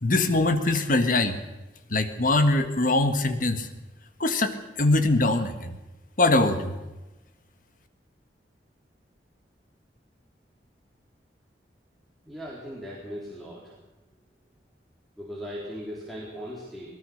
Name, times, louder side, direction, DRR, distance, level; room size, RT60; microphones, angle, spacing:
voice 1, 0.0-1.4 1.9-3.7 4.2-5.7 6.2-6.7, left 2 dB, 50° left, 8 dB, 1.6 m, -22 dB
voice 2, 12.3-13.6 15.2-16.9, equal, ahead, -5 dB, 4.0 m, -38 dB
21.0 x 19.0 x 6.5 m, 1.1 s
head